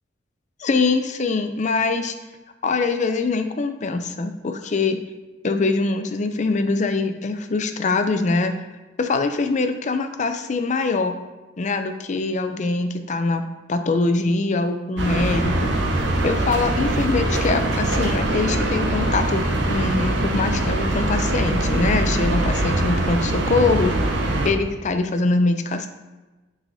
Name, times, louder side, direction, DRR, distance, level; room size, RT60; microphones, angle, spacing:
voice 1, 0.6-2.1 2.6-5.0 5.4-8.5 9.0-11.2 11.6-13.4 13.7-15.7 16.2-24.0 24.4-25.9, left 3 dB, 40° left, 8 dB, 0.5 m, -23 dB
sound 1, 15.0-24.5, right 1 dB, 80° right, 0.8 m, -22 dB
6.4 x 6.2 x 2.7 m, 1.2 s
head